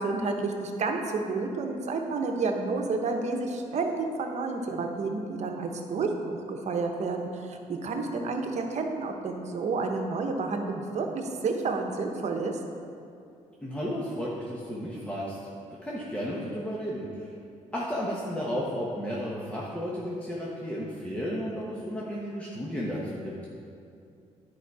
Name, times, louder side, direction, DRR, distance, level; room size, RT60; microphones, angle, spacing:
voice 1, 0.0-12.6, right 3 dB, 60° right, 3 dB, 1.0 m, -30 dB
voice 2, 13.6-15.4 15.8-17.3 17.7-23.3, equal, 10° left, -6 dB, 1.1 m, -33 dB
10.0 x 4.8 x 4.8 m, 2.5 s
cardioid pair, 90°, 13 cm